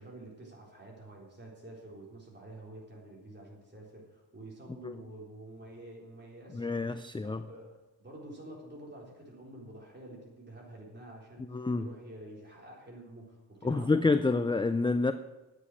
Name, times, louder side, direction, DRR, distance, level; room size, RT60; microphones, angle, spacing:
voice 1, 0.0-14.0, right 1 dB, 25° right, -3 dB, 3.9 m, -49 dB
voice 2, 6.5-7.4 11.5-11.9 13.6-15.1, left 3 dB, 10° left, 10 dB, 0.3 m, -28 dB
10.0 x 8.4 x 8.5 m, 1.0 s
wide cardioid pair, 140°, 46 cm